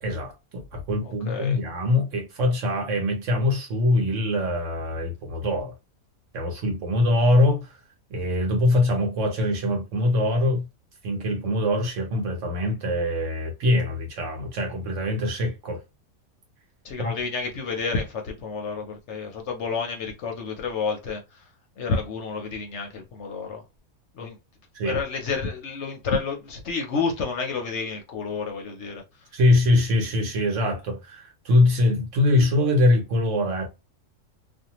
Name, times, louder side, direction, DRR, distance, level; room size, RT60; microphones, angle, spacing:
voice 1, 0.0-5.7 6.3-7.7 8.1-10.7 11.0-15.8 17.0-17.1 24.7-25.0 29.3-33.7, left 2 dB, 60° right, 1.1 m, -23 dB
voice 2, 1.0-1.6 16.8-21.5 21.8-23.6 24.1-24.4 24.8-29.3, left 5 dB, 60° left, 0.8 m, -30 dB
2.5 x 2.2 x 2.9 m
omnidirectional pair, 1.5 m